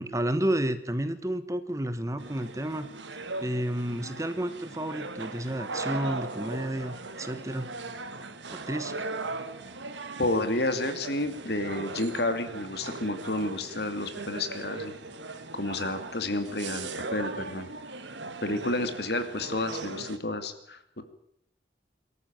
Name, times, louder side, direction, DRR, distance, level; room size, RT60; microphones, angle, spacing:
voice 1, 0.0-2.9 3.4-7.7 8.5-9.0, right 1 dB, 15° right, 11 dB, 1.2 m, -31 dB
sound 1, 2.2-20.2, right 3 dB, 80° right, 1.9 m, -39 dB
voice 2, 10.2-14.9 15.5-17.7 18.4-21.0, left 2 dB, 65° left, 9 dB, 2.4 m, -30 dB
23.0 x 14.0 x 8.9 m, 0.72 s
head